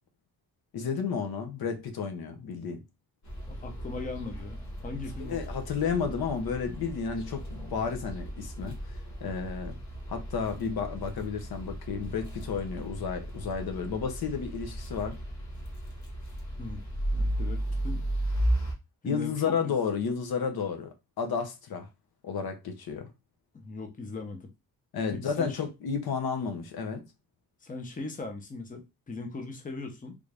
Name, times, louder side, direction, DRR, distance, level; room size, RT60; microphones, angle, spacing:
voice 1, 0.7-2.8 5.2-9.8 10.1-15.2 19.0-20.9 21.2-21.9 22.2-23.1 24.9-27.0, left 6 dB, 80° left, 0.8 m, -32 dB
sound 1, 3.2-18.7, right 1 dB, 50° left, 1.3 m, -35 dB
voice 2, 3.5-5.4 16.6-16.8 17.1-18.0 19.0-19.7 23.5-24.5 25.1-25.6 27.6-30.2, left 3 dB, 20° left, 0.7 m, -39 dB
3.4 x 2.5 x 3.3 m
wide cardioid pair, 135°, 36 cm